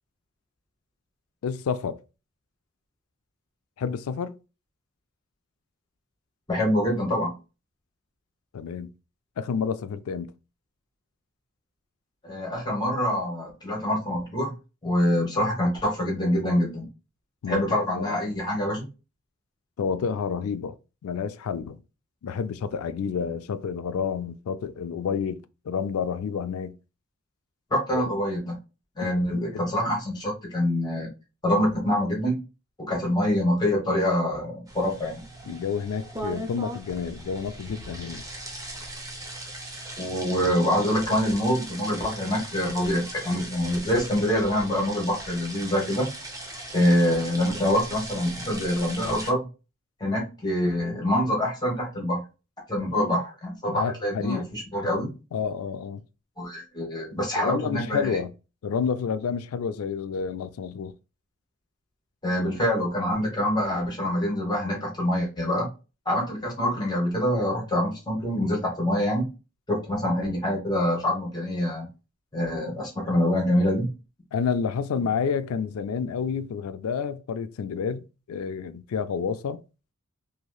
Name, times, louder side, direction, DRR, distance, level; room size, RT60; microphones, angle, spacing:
voice 1, 1.4-2.0 3.8-4.4 8.5-8.9 9.4-10.3 17.4-18.2 19.8-20.8 21.0-21.8 22.2-26.8 27.9-28.1 29.0-29.7 35.5-38.2 53.7-54.5 54.8-56.0 57.4-58.3 58.6-61.0 74.3-79.6, left 6 dB, 80° left, 0.4 m, -30 dB
voice 2, 6.5-7.3 12.2-14.5 14.8-16.9 17.5-18.9 27.7-28.6 28.9-31.1 31.4-32.4 32.8-35.2 40.0-46.1 46.7-49.5 50.0-52.2 52.7-55.1 56.4-58.2 62.2-65.7 66.0-69.3 69.7-71.9 72.3-73.9, left 1 dB, 20° left, 1.1 m, -25 dB
sound 1, 34.7-49.3, right 1 dB, 15° right, 0.5 m, -39 dB
3.1 x 2.7 x 2.3 m
head